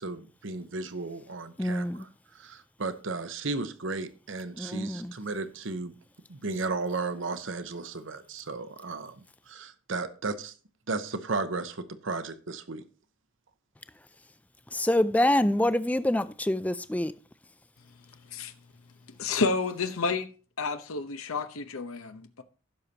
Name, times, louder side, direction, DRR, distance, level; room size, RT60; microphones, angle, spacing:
voice 1, 0.0-2.1 2.3-5.9 6.3-9.1 9.5-10.5 10.9-12.8, right 3 dB, 65° right, 0.9 m, -34 dB
voice 2, 1.6-2.0 4.6-5.1 14.7-17.1, left 1 dB, 5° left, 0.4 m, -26 dB
voice 3, 19.2-20.3 20.6-22.4, left 4 dB, 90° left, 0.9 m, -30 dB
16.0 x 6.7 x 2.9 m
head